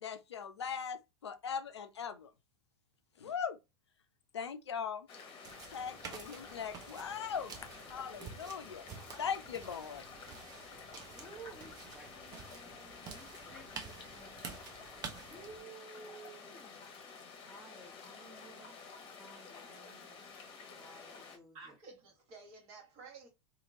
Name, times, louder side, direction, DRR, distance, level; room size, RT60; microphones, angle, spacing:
voice 1, 0.0-2.3 3.2-3.6 4.3-5.1 5.7-7.6 7.9-8.8 9.2-10.0, left 7 dB, 75° left, 0.4 m, -40 dB
sound 1, 5.1-21.4, left 5 dB, 35° left, 1.0 m, -51 dB
sound 2, 5.4-15.6, right 6 dB, 25° right, 0.6 m, -50 dB
voice 2, 10.5-14.7 15.3-16.8 17.4-18.8 19.2-20.2 20.7-21.8, right 3 dB, ahead, 1.0 m, -55 dB
voice 3, 21.5-23.3, right 4 dB, 45° right, 1.4 m, -53 dB
2.8 x 2.5 x 2.8 m
figure-of-eight pair, 85°, 14 cm